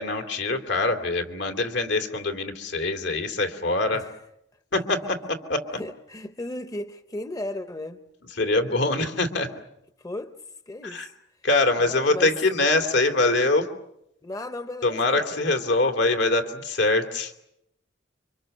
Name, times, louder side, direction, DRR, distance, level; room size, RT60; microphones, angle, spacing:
voice 1, 0.0-4.1 4.7-5.8 8.4-9.5 10.8-11.1 11.4-13.7 14.8-17.3, left 2 dB, 75° left, 2.9 m, -24 dB
voice 2, 5.7-8.0 10.0-10.3 10.7-11.0 11.8-12.3 14.2-15.1 15.3-15.4, left 1 dB, 20° left, 0.9 m, -35 dB
29.5 x 25.5 x 6.7 m
head